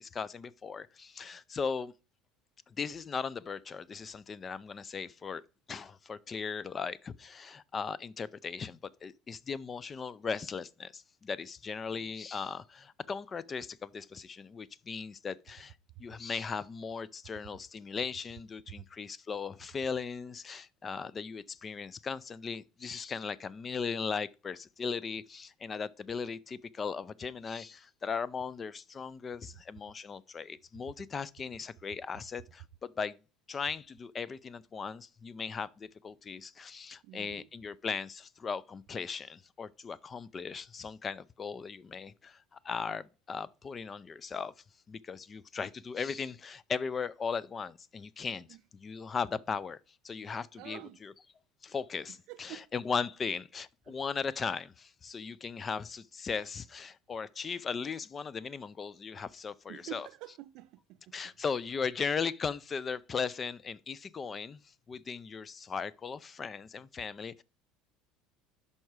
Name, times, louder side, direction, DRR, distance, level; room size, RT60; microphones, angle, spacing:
voice 1, 0.0-1.9 2.7-5.4 5.7-15.7 16.0-33.2 33.5-42.4 42.6-44.5 44.9-48.5 48.7-49.8 50.0-51.1 51.6-60.1 61.1-64.6 64.9-67.4, left 5 dB, 25° left, 0.3 m, -38 dB
voice 2, 37.0-37.5 48.5-48.6 50.6-51.0 52.1-52.7 53.9-54.0 59.7-61.2, right 16 dB, 60° right, 0.3 m, -48 dB
5.8 x 5.4 x 4.7 m
supercardioid pair, 130°, 0 cm